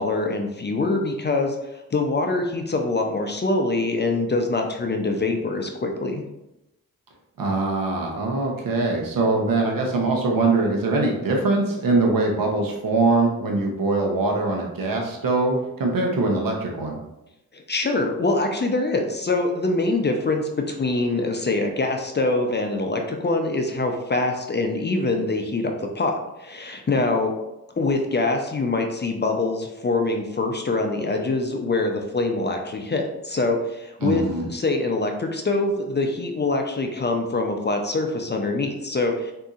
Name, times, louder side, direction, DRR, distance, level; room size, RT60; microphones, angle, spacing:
voice 1, 0.0-1.6 1.9-6.2 17.5-27.4 27.8-39.3, left 2 dB, 30° left, 3 dB, 0.6 m, -24 dB
voice 2, 7.4-17.0 34.0-34.5, right 3 dB, 60° right, 0 dB, 0.9 m, -22 dB
3.7 x 2.8 x 2.4 m, 0.91 s
supercardioid pair, 45°, 38 cm